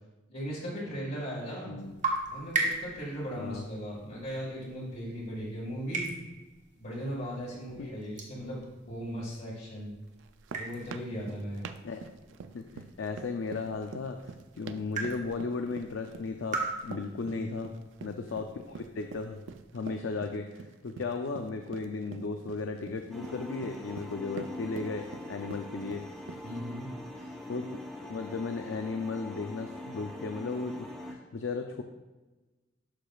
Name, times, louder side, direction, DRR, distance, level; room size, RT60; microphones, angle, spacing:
voice 1, 0.3-1.8 2.3-6.1 6.8-8.6 8.9-9.9 10.5-11.6 17.3-17.7 26.4-26.9, equal, 55° left, -7 dB, 1.7 m, -37 dB
sound 1, 1.8-19.6, right 3 dB, 40° right, 1.3 m, -40 dB
sound 2, 10.2-26.6, right 5 dB, 80° right, 0.4 m, -45 dB
voice 2, 12.5-14.2 14.5-17.7 18.0-19.4 19.7-26.1 27.2-27.7 28.0-31.8, left 4 dB, 80° left, 4 dB, 0.5 m, -35 dB
sound 3, 23.1-31.1, left 1 dB, ahead, 0.9 m, -42 dB
12.0 x 4.9 x 2.3 m, 1.2 s
head